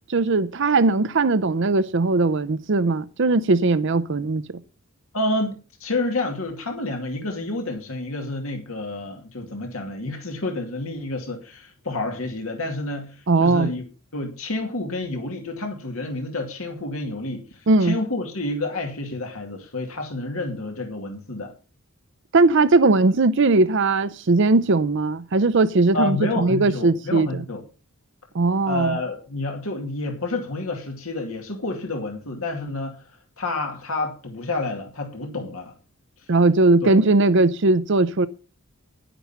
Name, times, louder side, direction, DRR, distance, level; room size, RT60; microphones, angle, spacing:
voice 1, 0.1-4.4 13.3-13.7 17.7-18.0 22.3-27.3 28.3-28.9 36.3-38.3, right 3 dB, 60° right, 0.6 m, -19 dB
voice 2, 5.1-5.5 5.8-13.8 14.1-21.5 25.9-27.6 28.7-33.1 33.4-35.7 36.2-36.3 36.8-37.0, left 2 dB, 75° left, 2.3 m, -29 dB
10.5 x 10.0 x 5.7 m
head